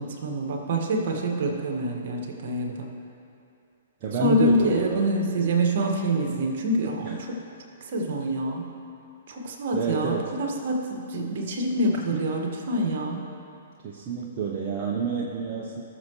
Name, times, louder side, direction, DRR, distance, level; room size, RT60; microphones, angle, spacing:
voice 1, 0.0-2.9 4.2-7.4 7.8-8.7 9.3-13.2, right 1 dB, 55° right, 1 dB, 1.8 m, -26 dB
voice 2, 4.0-5.0 7.0-7.1 9.7-10.3 12.1-12.2 13.8-15.8, right 6 dB, 40° right, -3 dB, 1.0 m, -29 dB
19.0 x 6.8 x 3.2 m, 2.5 s
figure-of-eight pair, 120°, 0 cm